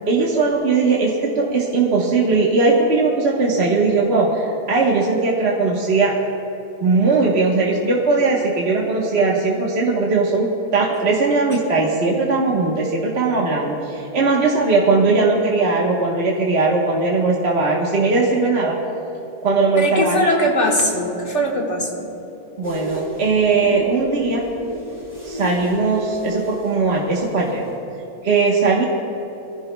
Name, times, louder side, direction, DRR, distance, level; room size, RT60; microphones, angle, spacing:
voice 1, 0.1-6.1 6.8-18.8 19.4-20.3 22.6-24.4 25.2-27.6 28.2-28.9, right 3 dB, 35° right, -3 dB, 1.3 m, -19 dB
voice 2, 19.7-22.1, equal, 40° left, -1 dB, 1.8 m, -20 dB
sound 1, 22.6-27.8, equal, 20° left, 2.8 m, -33 dB
24.0 x 15.0 x 2.3 m, 3.0 s
omnidirectional pair, 2.1 m